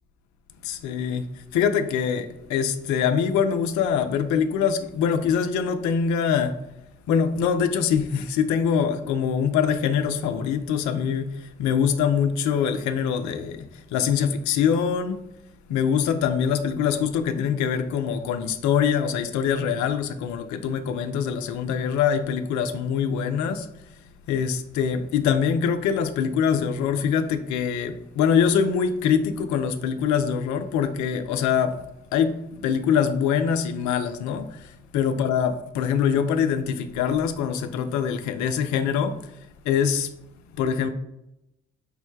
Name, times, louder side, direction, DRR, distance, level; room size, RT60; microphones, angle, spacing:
voice 1, 0.6-6.6 7.1-15.2 15.7-23.7 24.3-31.8 32.1-39.3 39.6-40.1 40.6-40.9, left 7 dB, 75° left, 0.5 m, -24 dB
5.2 x 2.1 x 4.6 m
hypercardioid pair, 40°, 29 cm